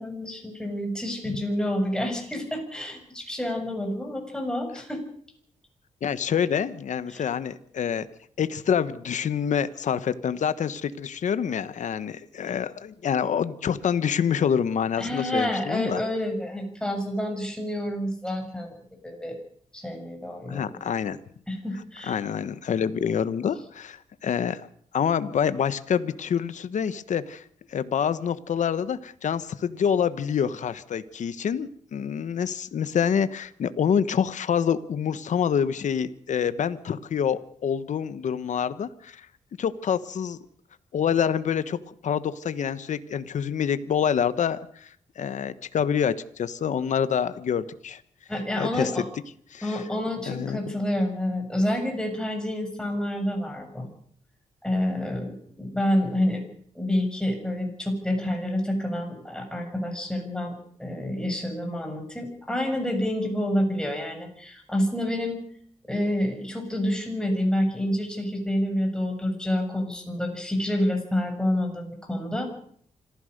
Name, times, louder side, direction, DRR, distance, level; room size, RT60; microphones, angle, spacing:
voice 1, 0.0-5.0 7.1-7.3 15.0-18.7 19.0-19.4 19.7-20.8 21.5-22.2 48.3-49.0 49.6-53.9 54.6-56.4 56.7-60.5 60.8-65.4 65.9-72.5, left 1 dB, 5° left, 3 dB, 6.9 m, -28 dB
voice 2, 6.0-8.1 8.4-16.0 20.5-21.2 22.0-24.7 24.9-27.4 27.7-39.3 39.6-40.4 40.9-41.8 42.0-48.0 48.6-48.9 49.5-49.8 50.3-50.6, left 8 dB, 70° left, 13 dB, 1.1 m, -26 dB
26.0 x 15.0 x 6.6 m, 0.63 s
cardioid pair, 100°, 13 cm